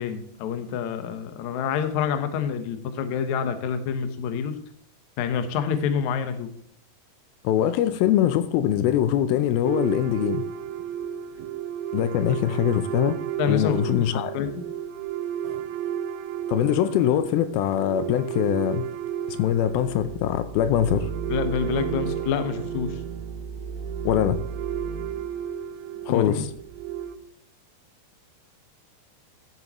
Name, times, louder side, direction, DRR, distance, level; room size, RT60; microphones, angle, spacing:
voice 1, 0.0-4.6 5.2-6.5 13.4-14.6 21.3-23.0 26.1-26.5, left 7 dB, 65° left, 2.0 m, -27 dB
voice 2, 7.4-10.5 11.9-13.2 13.5-14.3 16.5-18.9 19.3-21.1 24.1-24.4 26.1-26.5, left 11 dB, 80° left, 2.4 m, -23 dB
sound 1, 9.6-27.2, right 9 dB, 80° right, 1.9 m, -32 dB
13.0 x 8.2 x 3.0 m
omnidirectional pair, 4.4 m